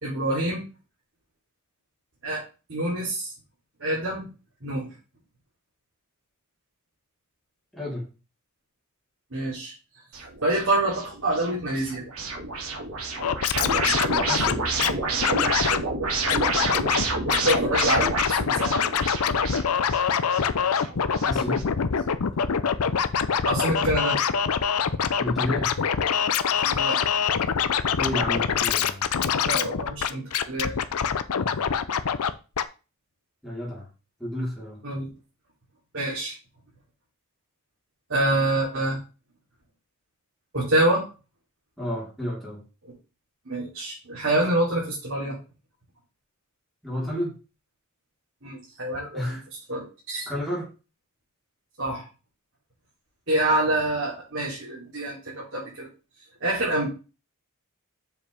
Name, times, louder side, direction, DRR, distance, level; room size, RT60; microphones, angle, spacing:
voice 1, 0.0-0.6 2.2-2.4 2.7-3.3 3.8-4.3 4.6-4.9 9.3-9.7 10.4-12.0 17.3-18.8 23.4-24.2 26.6-27.0 29.5-30.7 34.8-35.1 35.9-36.3 38.1-39.0 40.5-41.0 43.4-45.4 48.4-49.4 49.7-50.3 51.8-52.0 53.3-55.9 56.4-56.9, right 1 dB, 60° right, -6 dB, 3.3 m, -26 dB
voice 2, 7.7-8.1 14.3-14.6 21.3-21.6 25.2-25.7 28.0-29.1 33.4-33.9 34.2-34.8 41.8-42.6 44.4-44.5 46.8-47.4 49.1-49.4 50.3-50.7, equal, ahead, -8 dB, 4.0 m, -31 dB
sound 1, 10.1-21.6, right 3 dB, 85° right, 2.3 m, -30 dB
Scratching (performance technique), 13.2-14.9 15.2-15.8 16.3-17.0 17.3-32.3 32.6-32.7, left 7 dB, 90° left, 0.6 m, -24 dB
7.2 x 7.1 x 3.5 m, 0.32 s
head